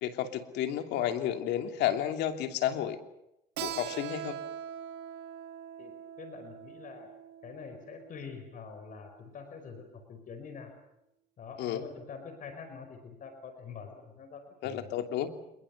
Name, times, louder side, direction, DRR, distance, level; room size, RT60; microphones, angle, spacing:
voice 1, 0.0-3.0 3.6-4.4 11.6-11.8 14.6-15.3, left 10 dB, 85° left, 6 dB, 2.9 m, -31 dB
Keyboard (musical), 3.6-8.8, right 10 dB, 85° right, 3.0 m, -42 dB
voice 2, 5.8-7.1 7.4-10.7 11.4-14.9, left 5 dB, 50° left, 7 dB, 5.2 m, -45 dB
27.5 x 22.0 x 7.2 m, 0.85 s
cardioid pair, 110°, 17 cm